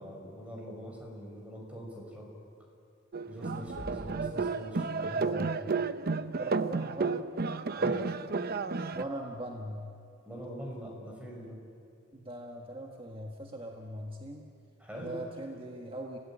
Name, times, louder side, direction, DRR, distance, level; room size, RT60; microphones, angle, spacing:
voice 1, 0.0-2.3 3.3-5.6 7.8-8.1 10.3-11.6 14.8-15.2, equal, 5° right, -1 dB, 6.0 m, -42 dB
sound 1, 3.1-9.0, right 4 dB, 50° right, 0.7 m, -32 dB
sound 2, 3.2-3.4 3.6-4.3 6.0-6.1 8.0-8.1 9.0-9.1, equal, 65° left, 4.6 m, -45 dB
voice 2, 6.4-7.2 8.9-9.9 12.1-14.5 15.0-16.2, right 1 dB, 25° right, 1 dB, 1.5 m, -41 dB
30.0 x 17.0 x 8.9 m, 2.5 s
head